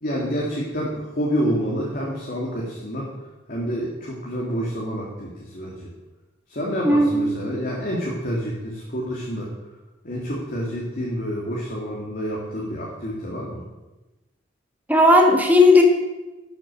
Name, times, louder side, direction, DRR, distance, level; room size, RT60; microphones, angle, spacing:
voice 1, 0.0-3.1 3.5-5.9 6.5-9.5 10.0-13.6, equal, 50° left, -4 dB, 1.9 m, -28 dB
voice 2, 6.8-7.1 14.9-15.8, left 2 dB, 10° right, 2 dB, 1.5 m, -14 dB
11.5 x 6.3 x 6.2 m, 1.1 s
head